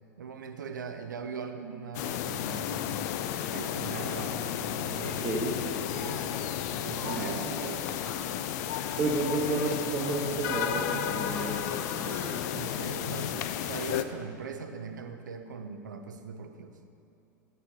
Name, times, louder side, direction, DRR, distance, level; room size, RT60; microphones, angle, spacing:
voice 1, 0.2-3.1 3.5-6.3 6.8-7.9 8.9-9.4 12.5-16.8, right 5 dB, 90° right, 7 dB, 0.7 m, -41 dB
sound 1, 1.9-14.0, left 10 dB, 65° left, 0.5 m, -33 dB
Shatter, 3.9-4.5 4.9-5.5 5.9-6.5 6.8-9.0 9.3-12.3, left 2 dB, 25° left, 2.5 m, -46 dB
voice 2, 5.2-5.6 7.0-7.4 9.0-12.5, right 2 dB, 30° right, -3 dB, 1.5 m, -31 dB
16.0 x 7.9 x 2.9 m, 2.8 s
hypercardioid pair, 90°, 10 cm